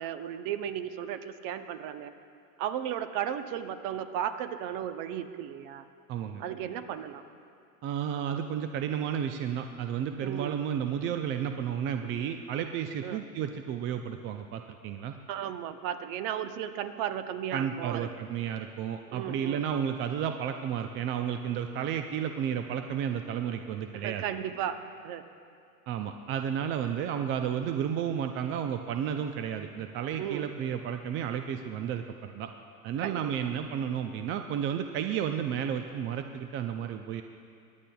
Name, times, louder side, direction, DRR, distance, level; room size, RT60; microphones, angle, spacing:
voice 1, 0.0-2.1 2.6-5.8 6.4-7.2 10.2-10.6 13.0-13.2 15.3-18.1 19.1-19.7 23.9-24.8 25.0-25.2 30.2-30.5 33.0-33.3, right 10 dB, 45° right, 10 dB, 0.8 m, -35 dB
voice 2, 6.1-6.4 7.8-15.1 17.5-24.2 25.9-32.5 32.8-37.2, right 8 dB, 30° right, 7 dB, 0.4 m, -32 dB
24.0 x 10.0 x 2.3 m, 2.4 s
hypercardioid pair, 100°, 45 cm